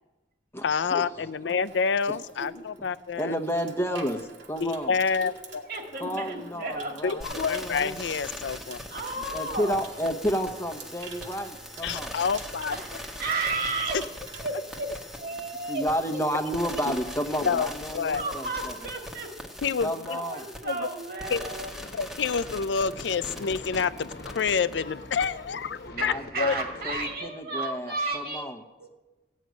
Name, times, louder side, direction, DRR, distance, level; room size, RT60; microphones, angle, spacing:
voice 1, 0.6-3.3 4.6-5.6 7.0-8.8 11.8-12.8 13.9-14.0 16.9-17.0 17.4-18.2 19.6-20.2 20.6-20.9 21.3-21.5 21.9-26.5, left 5 dB, 75° left, 15 dB, 0.5 m, -28 dB
Water tap faucet / Sink (filling or washing), 1.1-15.7 16.0-16.3, right 5 dB, 85° right, 2.1 m, -49 dB
voice 2, 3.2-4.2 4.5-4.9 6.0-8.0 9.3-12.1 15.7-18.7 19.8-20.4 25.9-28.6, equal, 15° left, 5 dB, 1.0 m, -31 dB
voice 3, 5.7-7.2 8.9-9.9 12.7-14.0 14.4-15.9 18.1-19.4 20.1-21.7 26.0-28.5 28.8-28.9, right 3 dB, 55° right, 3 dB, 2.2 m, -33 dB
sound 1, 7.2-24.7 25.1-25.3, left 1 dB, ahead, 1.2 m, -41 dB
sound 2, 21.4-27.2, left 2 dB, 55° left, 1.1 m, -44 dB
15.5 x 6.3 x 9.3 m, 1.1 s
head